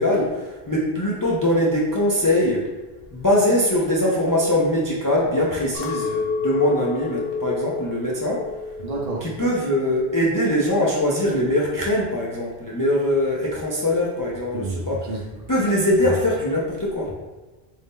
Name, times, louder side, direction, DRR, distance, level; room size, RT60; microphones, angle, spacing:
voice 1, 0.0-2.7 3.1-8.5 9.2-15.0 15.5-17.1, left 1 dB, 30° left, -4 dB, 0.3 m, -22 dB
Chink clink, 5.7-10.1 10.5-11.1, left 4 dB, 80° left, 0.9 m, -30 dB
voice 2, 8.8-9.3 14.5-15.3 16.0-16.2, right 2 dB, 45° right, -2 dB, 0.7 m, -30 dB
3.9 x 2.7 x 3.6 m, 1.2 s
omnidirectional pair, 1.0 m